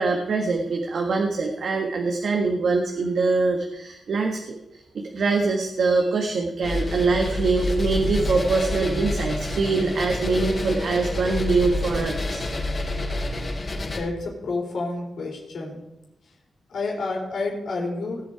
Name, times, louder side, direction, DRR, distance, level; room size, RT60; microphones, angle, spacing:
voice 1, 0.0-4.6 4.9-12.4, right 3 dB, 70° right, 2 dB, 1.5 m, -23 dB
sound 1, 6.6-14.0, left 2 dB, 40° left, 3.8 m, -28 dB
voice 2, 13.9-15.8 16.7-18.3, left 3 dB, 75° left, -1 dB, 3.9 m, -29 dB
19.5 x 7.5 x 4.7 m, 0.92 s
cardioid pair, 95°, 0 cm